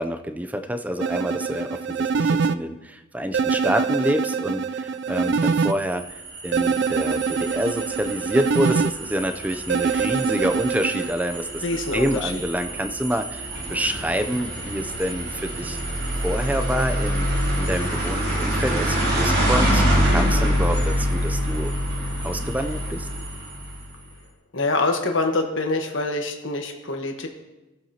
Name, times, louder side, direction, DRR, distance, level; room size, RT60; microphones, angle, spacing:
voice 1, 0.0-6.2 6.4-11.6 11.9-15.8 16.2-17.3 17.6-21.7 22.2-23.1, equal, 10° right, 7 dB, 0.5 m, -27 dB
sound 1, 1.0-2.6 3.3-5.7 6.5-8.9 9.7-11.1, right 5 dB, 60° right, 0.4 m, -24 dB
sound 2, 5.4-23.9, equal, 90° right, 4.5 m, -26 dB
voice 2, 11.6-12.4 24.5-27.3, left 2 dB, 70° left, 3 dB, 1.3 m, -25 dB
18.5 x 7.7 x 2.9 m, 1.0 s
head